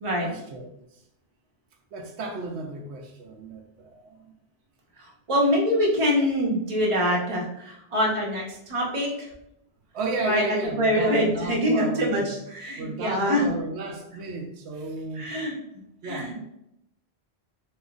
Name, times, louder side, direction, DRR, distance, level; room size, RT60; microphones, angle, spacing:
voice 1, 0.2-0.8 1.9-4.3 9.9-12.3 12.8-15.3 16.0-16.4, right 3 dB, 85° right, 0.9 m, -33 dB
voice 2, 5.0-9.3 10.2-13.5 15.1-16.4, equal, 35° right, 0.7 m, -25 dB
3.0 x 2.1 x 3.6 m
omnidirectional pair, 1.1 m